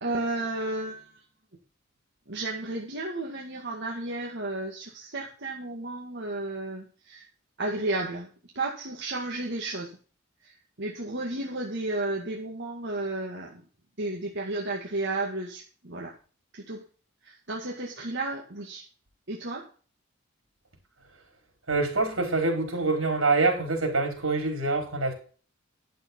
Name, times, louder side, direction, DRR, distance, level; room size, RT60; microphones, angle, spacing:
voice 1, 0.0-1.2 2.3-7.3 7.6-10.0 10.4-13.7 14.0-16.2 16.5-16.9 17.2-18.9 19.3-19.7, right 2 dB, 60° right, 2.1 m, -33 dB
voice 2, 21.7-25.1, right 3 dB, 85° right, 5.1 m, -25 dB
11.5 x 6.9 x 5.6 m
head